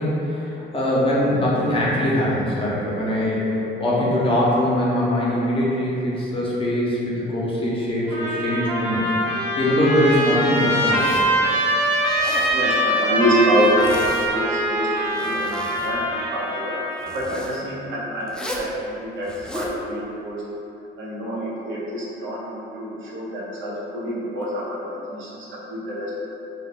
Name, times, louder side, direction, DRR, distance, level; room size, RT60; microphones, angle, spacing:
voice 1, 0.0-9.1 9.6-11.2, left 1 dB, 25° left, -6 dB, 0.7 m, -22 dB
Trumpet, 8.1-17.2, equal, 30° right, 0.9 m, -23 dB
Zipper (clothing), 10.8-11.4 12.0-12.6 13.6-14.3 14.9-15.9 17.0-17.6 18.3-18.7 19.2-19.8, left 1 dB, 5° left, 0.3 m, -35 dB
voice 2, 12.5-15.6 15.8-16.8 17.1-20.5 21.0-26.2, equal, 75° right, -7 dB, 0.8 m, -26 dB
2.3 x 2.2 x 3.5 m, 2.9 s
cardioid pair, 90°, 20 cm